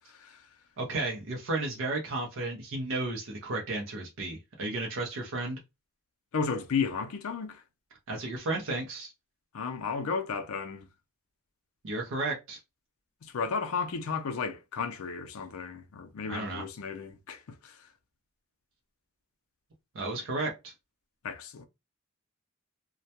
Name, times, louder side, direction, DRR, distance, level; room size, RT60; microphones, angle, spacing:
voice 1, 0.1-0.4 6.3-7.6 9.5-10.9 13.2-17.8 21.2-21.6, left 5 dB, 70° left, 0.4 m, -33 dB
voice 2, 0.8-5.6 8.1-9.1 11.8-12.6 16.3-16.6 19.9-20.7, right 2 dB, 60° right, 0.6 m, -33 dB
2.2 x 2.1 x 2.7 m
head